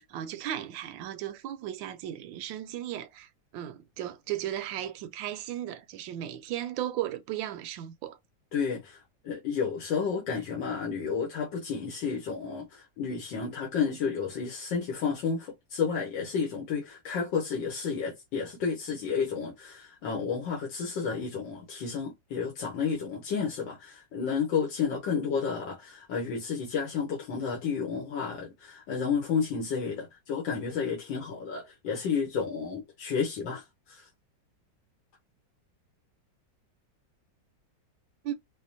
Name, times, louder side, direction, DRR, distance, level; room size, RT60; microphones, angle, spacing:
voice 1, 0.0-8.2 38.2-38.3, right 12 dB, 80° right, 1.3 m, -36 dB
voice 2, 8.5-34.1, left 6 dB, 80° left, 1.7 m, -31 dB
5.0 x 2.2 x 2.6 m
omnidirectional pair, 2.0 m